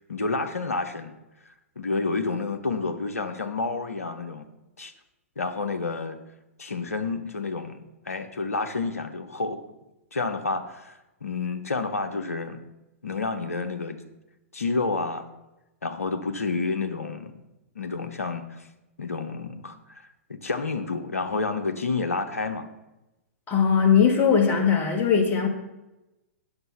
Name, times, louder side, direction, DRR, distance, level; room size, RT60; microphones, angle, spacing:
voice 1, 0.1-1.1 1.8-4.5 4.8-4.9 5.4-6.2 6.6-9.6 10.1-12.6 13.0-14.0 14.5-15.3 15.8-17.3 17.8-18.7 19.0-22.7, left 3 dB, 80° left, 7 dB, 0.9 m, -29 dB
voice 2, 23.5-25.5, left 7 dB, 25° left, 2 dB, 1.9 m, -20 dB
9.1 x 6.6 x 5.5 m, 0.97 s
figure-of-eight pair, 110°, 8 cm